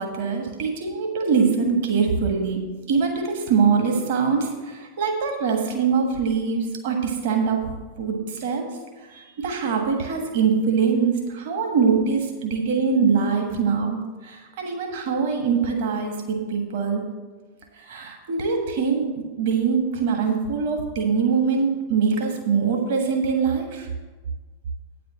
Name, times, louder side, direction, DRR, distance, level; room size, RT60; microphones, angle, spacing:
voice 1, 0.0-2.6 2.9-8.7 9.0-17.0 17.7-23.9, right 5 dB, 55° right, 3 dB, 1.5 m, -23 dB
9.3 x 5.1 x 7.4 m, 1.3 s
figure-of-eight pair, 90°, 0 cm